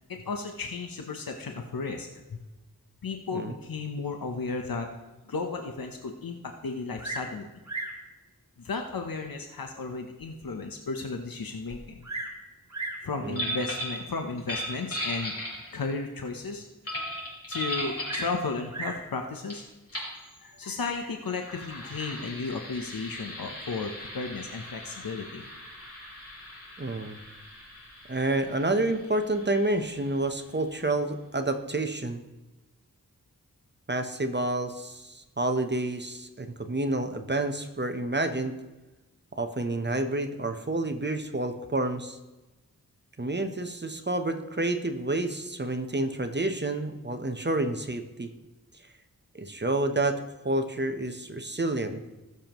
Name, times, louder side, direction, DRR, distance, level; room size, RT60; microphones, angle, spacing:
voice 1, 0.1-2.4 3.0-4.9 5.3-7.4 8.6-12.0 13.0-15.3 15.7-16.6 17.5-19.6 20.4-25.4, left 4 dB, 75° left, 4 dB, 0.9 m, -34 dB
Bird vocalization bird call bird song, 7.0-7.4 7.6-8.0 8.9-9.0 9.6-9.7 10.2-10.3 10.5-10.6 11.7-12.4 12.7-13.1 14.1-14.4 18.0-19.1 20.1-20.6, right 2 dB, 50° right, 1.6 m, -37 dB
sound 1, 13.3-14.0 14.4-15.9 16.8-18.3 19.5-19.6 19.9-20.1 21.2-30.5, equal, 40° left, 4.3 m, -38 dB
voice 2, 26.8-27.2 28.1-32.2 33.9-38.6 39.3-42.2 43.2-48.3 49.3-50.2 50.4-52.0, right 2 dB, 30° right, 7 dB, 0.9 m, -29 dB
19.0 x 7.1 x 3.0 m, 1.1 s
wide cardioid pair, 50°, 35 cm